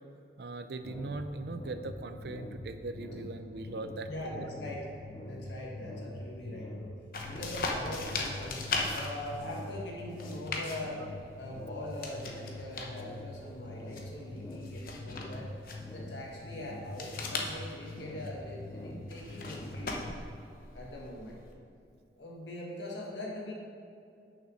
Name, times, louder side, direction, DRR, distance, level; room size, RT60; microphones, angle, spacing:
voice 1, 0.4-4.5, right 2 dB, 65° right, 9 dB, 0.5 m, -40 dB
sound 1, 0.8-20.1, left 1 dB, 25° left, 0.5 m, -44 dB
voice 2, 4.1-4.9 5.2-6.9 7.2-8.6 8.9-11.0 11.4-15.5 15.9-19.9 20.7-21.4 22.2-23.5, left 1 dB, 85° left, -3 dB, 1.7 m, -42 dB
sound 2, 7.1-21.5, left 3 dB, 50° left, 0.9 m, -40 dB
6.4 x 6.0 x 6.3 m, 2.5 s
head